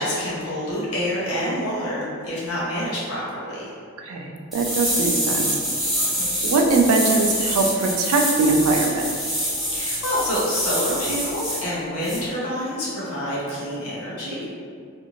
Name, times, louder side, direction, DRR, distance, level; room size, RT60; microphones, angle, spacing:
voice 1, 0.0-3.7 6.2-6.5 9.7-14.5, equal, 90° left, -8 dB, 0.8 m, -27 dB
voice 2, 4.0-5.6 6.4-9.1, right 3 dB, 75° right, 3 dB, 0.3 m, -21 dB
sound 1, 4.5-11.6 12.0-12.2, equal, ahead, 0.6 m, -26 dB
2.5 x 2.5 x 2.9 m, 2.2 s
head